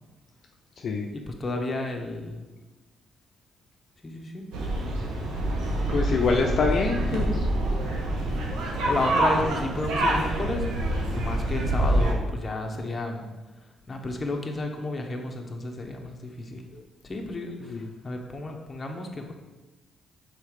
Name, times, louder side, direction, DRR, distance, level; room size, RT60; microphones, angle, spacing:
voice 1, 1.1-2.5 4.0-4.5 8.8-10.7 11.1-13.2 13.9-16.7 17.1-19.3, left 2 dB, 30° left, 2 dB, 1.0 m, -32 dB
sound 1, 4.5-12.1, right 1 dB, 90° right, 1.1 m, -26 dB
voice 2, 5.9-7.5 16.7-16.8 17.6-17.9, left 4 dB, 60° left, 1 dB, 0.5 m, -26 dB
5.5 x 4.0 x 4.9 m, 1.2 s
cardioid pair, 90°, 0 cm